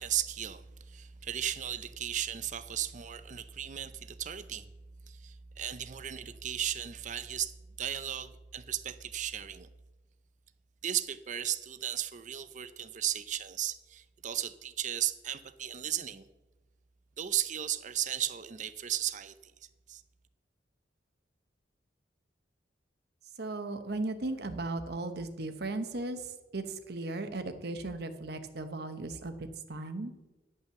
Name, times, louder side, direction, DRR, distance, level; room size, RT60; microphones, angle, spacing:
voice 1, 0.0-4.7 5.1-7.5 7.8-9.7 10.8-16.3 17.2-19.5 19.9-20.0, right 11 dB, 40° right, 13 dB, 0.5 m, -35 dB
voice 2, 23.4-30.1, right 2 dB, 60° right, 9 dB, 0.9 m, -37 dB
10.5 x 5.6 x 6.9 m, 1.1 s
head